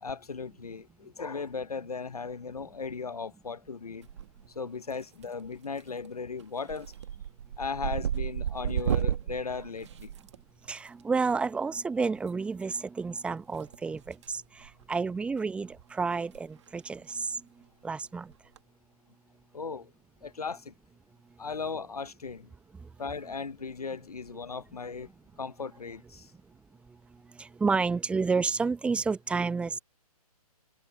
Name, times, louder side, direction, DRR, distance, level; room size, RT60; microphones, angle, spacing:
voice 1, 0.0-4.1 4.5-6.9 7.6-10.1 19.5-19.9 20.2-20.7 21.4-22.5 23.0-25.1 25.4-26.3, left 5 dB, 70° left, 1.1 m, -37 dB
sound 1, 4.0-4.6 4.9-5.4 5.8-6.1 6.4-10.8 12.2-12.3 13.5-14.3 14.6-14.8 15.4-15.5 15.7-15.8 16.2-16.4 16.7-16.8 18.3-18.6, right 9 dB, 45° right, 1.5 m, -33 dB
voice 2, 10.7-17.4 17.8-18.3 27.4-29.8, right 4 dB, 5° right, 1.1 m, -30 dB
figure-of-eight pair, 130°, 20 cm